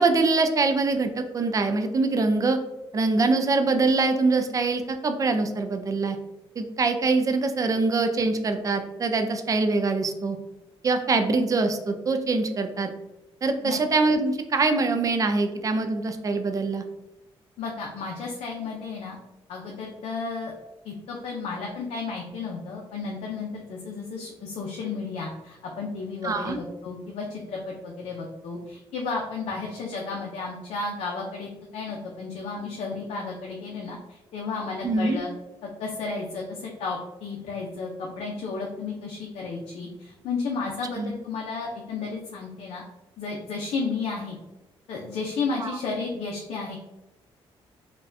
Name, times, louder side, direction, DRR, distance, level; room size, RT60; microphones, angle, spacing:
voice 1, 0.0-2.6 2.9-6.2 6.6-10.4 10.8-12.9 13.4-16.8 26.2-26.6 34.8-35.2 40.9-41.1 45.6-45.8, right 3 dB, 35° right, 6 dB, 0.4 m, -24 dB
voice 2, 17.6-19.2 19.5-20.5 20.8-35.3 35.8-42.8 43.2-44.4 44.9-46.7, left 4 dB, 90° left, -1 dB, 0.5 m, -33 dB
4.0 x 2.2 x 2.6 m, 0.99 s
cardioid pair, 110°, 10 cm